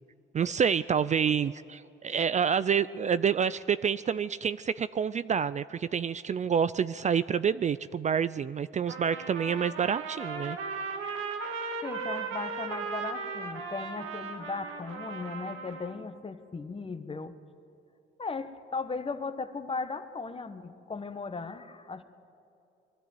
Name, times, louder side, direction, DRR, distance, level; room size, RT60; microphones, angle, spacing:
voice 1, 0.3-10.6, right 7 dB, 35° right, 15 dB, 0.4 m, -28 dB
Trumpet, 8.9-16.0, right 4 dB, 85° right, 2.0 m, -37 dB
voice 2, 11.8-17.3 18.2-22.0, left 4 dB, 30° left, 10 dB, 1.2 m, -37 dB
22.0 x 13.0 x 9.3 m, 2.8 s
cardioid pair, 90°, 20 cm